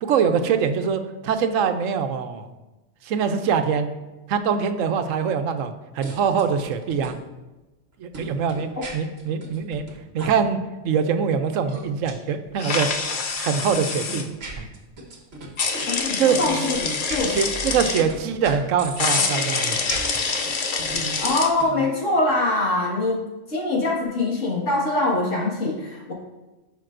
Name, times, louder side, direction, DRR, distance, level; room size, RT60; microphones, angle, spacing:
voice 1, 0.0-2.5 3.0-3.9 4.3-7.2 8.0-9.8 10.1-10.6 10.8-12.9 13.4-14.3 14.6-14.7 16.2-16.7 17.3-19.8 20.1-20.2, right 6 dB, 85° right, 9 dB, 1.0 m, -23 dB
sound 1, 6.0-7.1 8.1-9.9 10.2-10.3 11.7-12.1 13.1-18.2 18.4-19.3 19.7-21.9, right 3 dB, 55° right, 1.5 m, -36 dB
sound 2, 12.6-14.2 15.6-18.0 19.0-21.5, left 4 dB, 50° left, 0.7 m, -26 dB
voice 2, 15.9-16.8 17.1-17.4 21.2-23.2 23.5-26.1, left 2 dB, 75° left, -4 dB, 2.1 m, -23 dB
12.0 x 5.3 x 2.6 m, 1.1 s
omnidirectional pair, 1.3 m